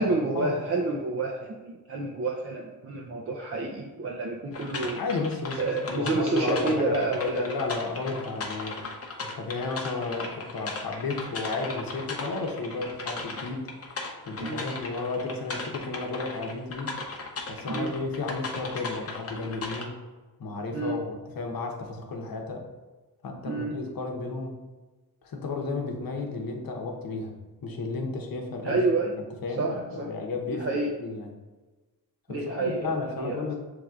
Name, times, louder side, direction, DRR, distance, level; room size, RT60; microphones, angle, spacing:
voice 1, 0.0-5.0 5.6-7.5 9.6-9.7 14.4-14.6 17.7-17.9 20.7-21.0 23.4-23.7 28.6-29.2 29.6-30.1 30.5-30.9 32.3-33.5, right 3 dB, 40° right, -1 dB, 0.6 m, -29 dB
sound 1, 4.5-19.9, left 3 dB, 40° left, 0.8 m, -37 dB
voice 2, 5.0-8.8 9.3-13.7 14.3-16.9 17.5-20.0 20.4-22.7 23.2-24.6 25.2-27.3 27.6-28.8 29.1-30.7 31.0-31.3 32.3-33.6, left 3 dB, 65° left, 3 dB, 0.9 m, -33 dB
6.5 x 3.4 x 2.4 m, 1.2 s
cardioid pair, 80°, 37 cm